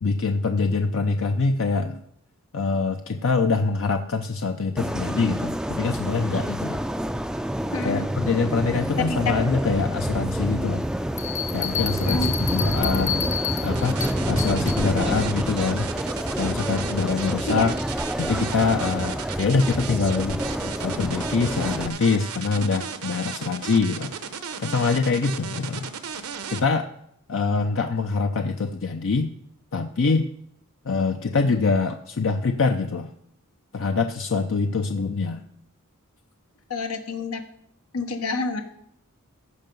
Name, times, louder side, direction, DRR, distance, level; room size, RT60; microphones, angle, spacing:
voice 1, 0.0-2.0 2.5-6.8 7.8-10.9 11.5-13.3 13.6-15.9 16.4-17.7 18.2-20.4 20.8-24.1 24.6-25.9 26.1-26.2 26.5-26.9 27.3-29.3 29.7-30.3 30.8-33.1 33.7-35.4, left 4 dB, 65° left, 6 dB, 0.6 m, -24 dB
sound 1, 4.8-21.9, equal, 5° right, 0.4 m, -28 dB
voice 2, 7.7-8.0 9.1-9.3 12.1-12.3 17.5-17.7 36.7-37.4 37.9-38.6, left 3 dB, 85° left, 5 dB, 1.1 m, -28 dB
Bell, 11.2-14.8, left 9 dB, 35° left, 1.0 m, -30 dB
sound 2, 13.7-26.6, right 7 dB, 80° right, 0.9 m, -35 dB
15.0 x 5.6 x 5.3 m, 0.73 s
head